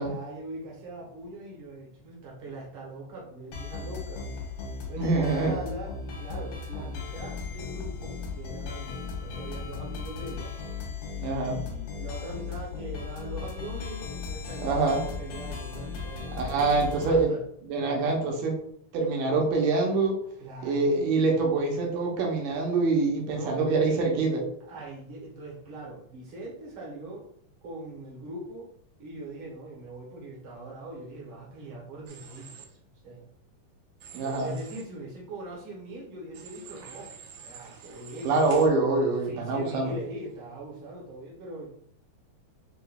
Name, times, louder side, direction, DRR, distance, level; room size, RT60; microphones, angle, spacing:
voice 1, 0.0-4.3 4.9-10.5 11.1-17.4 20.4-21.2 23.3-23.8 24.7-27.3 27.6-28.7 29.0-32.8 33.0-33.3 34.1-37.1 37.4-38.4 39.2-41.7, right 2 dB, 55° right, -3 dB, 1.6 m, -41 dB
sound 1, 3.5-17.2, left 5 dB, 70° left, 2.3 m, -37 dB
voice 2, 5.0-5.6 11.2-11.6 14.6-15.0 16.4-17.3 17.7-18.6 18.9-20.2 20.6-24.5 34.1-34.6 38.2-40.0, right 3 dB, 75° right, 0 dB, 2.3 m, -25 dB
Human voice / Train, 32.1-32.7 34.0-34.8 36.3-38.7, right 6 dB, 90° right, 2.4 m, -46 dB
6.6 x 2.5 x 2.3 m, 0.65 s
omnidirectional pair, 3.9 m